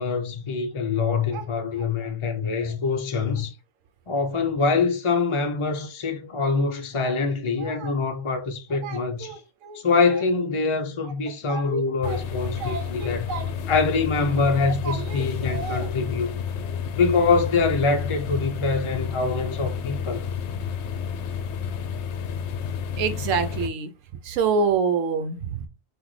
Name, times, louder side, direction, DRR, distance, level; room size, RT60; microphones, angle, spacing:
voice 1, 0.0-3.5 4.1-9.4 9.8-13.3 13.7-16.4 16.9-20.3, left 4 dB, 40° left, 0.4 m, -24 dB
voice 2, 7.6-7.9 8.8-9.8 11.5-13.7 14.8-15.9 23.0-23.9 24.2-25.7, right 5 dB, 80° right, 1.0 m, -28 dB
sound 1, 12.0-23.7, left 7 dB, 70° left, 0.8 m, -30 dB
5.9 x 2.6 x 3.1 m
omnidirectional pair, 1.3 m